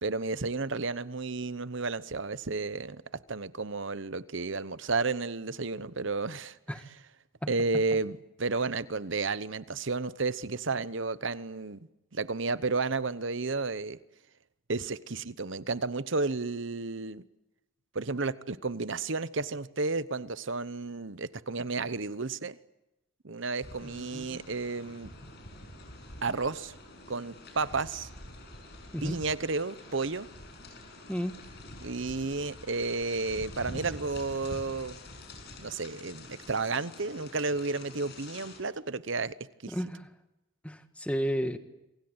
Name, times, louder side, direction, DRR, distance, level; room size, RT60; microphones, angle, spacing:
voice 1, 0.0-3.0 3.3-6.6 7.5-14.0 14.7-17.2 17.9-22.6 23.2-25.1 26.2-26.7 27.1-28.1 29.0-30.3 31.8-35.0 35.6-39.4 39.6-39.7, right 3 dB, 60° right, 1.0 m, -32 dB
sound 1, 23.6-38.6, left 1 dB, 50° left, 6.7 m, -47 dB
voice 2, 23.8-24.4 28.9-29.2 31.1-31.4 39.7-40.1 40.6-41.6, equal, 5° left, 1.6 m, -33 dB
28.0 x 25.5 x 8.1 m
head